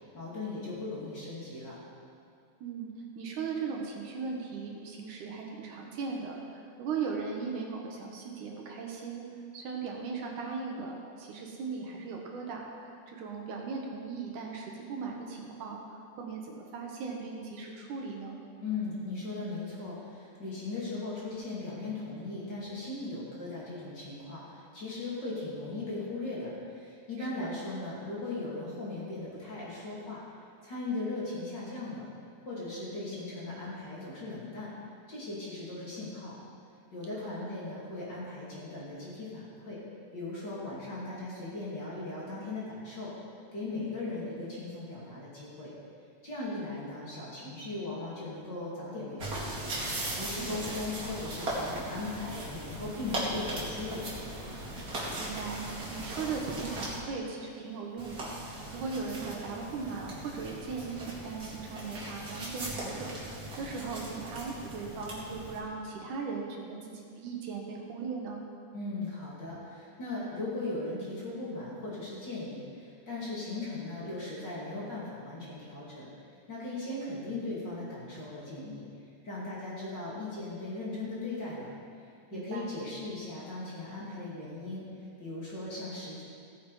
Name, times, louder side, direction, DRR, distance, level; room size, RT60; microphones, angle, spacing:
voice 1, 0.1-1.8 18.6-30.2 30.6-32.0 32.4-34.7 35.1-36.3 36.9-39.8 40.1-43.1 43.5-45.7 46.2-49.7 49.9-54.0 68.7-76.1 76.5-78.8 79.2-81.7 82.3-84.9 85.2-86.2, left 2 dB, 35° left, -7 dB, 2.8 m, -38 dB
voice 2, 3.2-9.2 9.5-15.8 16.2-18.4 27.2-27.5 37.2-37.5 50.4-50.6 55.2-55.6 55.9-68.4 82.3-82.7, right 5 dB, 75° right, 0 dB, 2.7 m, -38 dB
sound 1, 49.2-57.0 58.0-65.6, right 1 dB, 30° right, 2.3 m, -38 dB
16.0 x 7.5 x 4.9 m, 2.5 s
omnidirectional pair, 3.7 m